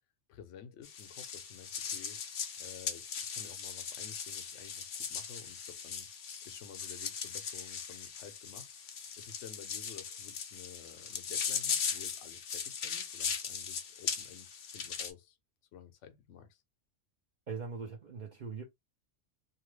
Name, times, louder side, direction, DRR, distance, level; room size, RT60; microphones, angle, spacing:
voice 1, 0.3-2.3 2.6-6.1 6.4-15.4 15.7-16.6, left 8 dB, 75° left, 1.0 m, -52 dB
sound 1, 0.8-15.1, left 6 dB, 55° left, 0.6 m, -39 dB
voice 2, 17.5-18.6, right 5 dB, 50° right, 0.7 m, -41 dB
2.9 x 2.3 x 3.1 m
omnidirectional pair, 1.3 m